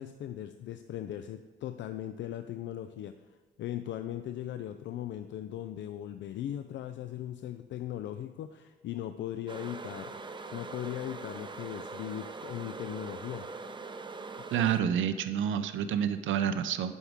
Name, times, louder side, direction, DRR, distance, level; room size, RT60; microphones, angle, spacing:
voice 1, 0.0-3.1 3.6-10.2 10.5-13.5, left 11 dB, 70° left, 9 dB, 0.5 m, -38 dB
sound 1, 9.5-14.8, right 4 dB, 25° right, 0.7 m, -42 dB
voice 2, 14.5-16.9, right 8 dB, 75° right, 11 dB, 0.6 m, -28 dB
11.5 x 6.2 x 3.5 m, 1.5 s
cardioid pair, 90°, 20 cm